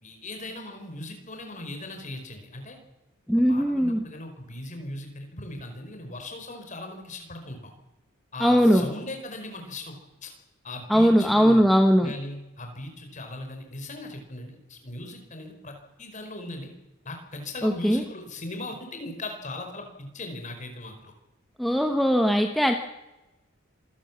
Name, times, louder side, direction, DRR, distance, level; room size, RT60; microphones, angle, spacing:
voice 1, 0.0-2.8 3.5-7.7 8.3-10.0 10.2-10.3 10.6-11.7 12.0-16.7 17.0-21.1, left 2 dB, 35° left, 5 dB, 4.6 m, -38 dB
voice 2, 3.3-4.0 8.4-8.8 10.9-12.1 17.6-18.0 21.6-22.7, equal, ahead, 4 dB, 1.1 m, -20 dB
26.5 x 17.0 x 7.2 m, 0.99 s
head